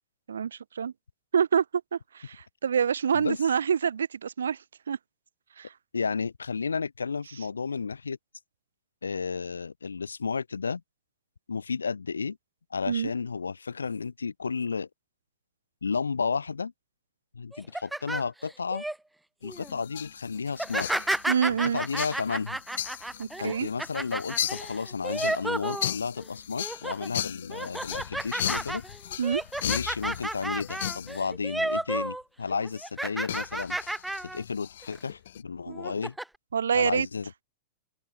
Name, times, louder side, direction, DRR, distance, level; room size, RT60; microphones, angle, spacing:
voice 1, 0.3-0.9 1.3-1.6 1.9-4.6 4.9-5.0 5.6-5.7 12.9-13.1 21.3-21.8 23.2-23.7 29.2-29.4 35.7-35.8 36.5-37.1, right 7 dB, 75° right, 1.2 m, -26 dB
voice 2, 5.9-8.2 9.0-10.8 11.5-12.4 12.7-14.9 15.8-16.7 17.3-18.8 19.4-21.2 21.5-22.6 23.4-28.8 29.6-33.8 34.3-36.2 36.7-37.4, left 5 dB, 85° left, 2.7 m, -32 dB
sound 1, 17.5-18.9 19.4-19.7 20.5-26.2 26.6-27.1 27.5-32.2 32.5-34.4 34.8-35.0 35.7-36.2, right 1 dB, 5° right, 0.7 m, -32 dB
sound 2, 19.4-31.2 33.3-35.4, left 11 dB, 65° left, 5.9 m, -37 dB
figure-of-eight pair, 100°, 0 cm